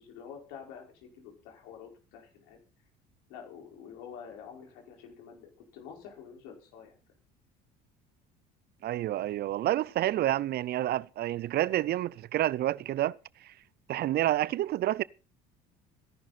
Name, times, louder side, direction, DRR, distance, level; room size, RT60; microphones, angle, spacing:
voice 1, 0.0-2.6 3.3-7.0 10.1-10.2, left 7 dB, 75° left, 5.0 m, -48 dB
voice 2, 8.8-13.2 13.9-15.0, right 14 dB, 55° right, 0.6 m, -29 dB
17.5 x 11.0 x 4.3 m
hypercardioid pair, 70°, 20 cm